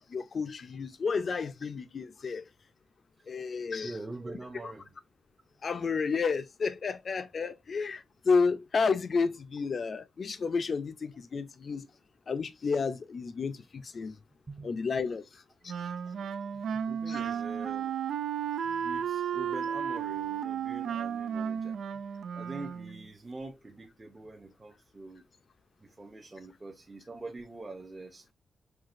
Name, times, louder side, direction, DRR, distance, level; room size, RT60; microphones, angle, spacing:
voice 1, 0.0-2.4 3.3-4.0 4.6-4.7 5.6-11.9 12.3-14.2 14.6-15.2 15.6-15.7 17.1-17.2, left 5 dB, 40° left, 0.5 m, -31 dB
voice 2, 3.8-4.9 14.5-14.7 16.7-17.9 18.6-21.8 22.3-25.2 25.8-28.3, right 2 dB, 20° right, 0.7 m, -44 dB
Wind instrument woodwind instrument, 15.7-23.1, right 8 dB, 90° right, 0.4 m, -33 dB
5.7 x 2.8 x 2.5 m
wide cardioid pair, 165°, 0 cm